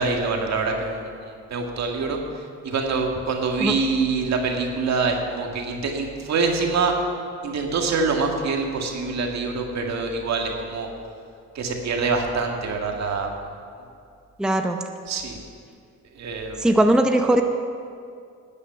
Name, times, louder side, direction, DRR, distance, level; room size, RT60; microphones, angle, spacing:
voice 1, 0.0-6.9 7.4-10.9 11.5-13.3 15.1-15.4 16.1-16.8, right 4 dB, 60° right, 2 dB, 1.8 m, -25 dB
voice 2, 14.4-14.8 16.6-17.4, right 1 dB, ahead, 5 dB, 0.7 m, -19 dB
12.5 x 8.2 x 6.9 m, 2.3 s
cardioid pair, 90°, 30 cm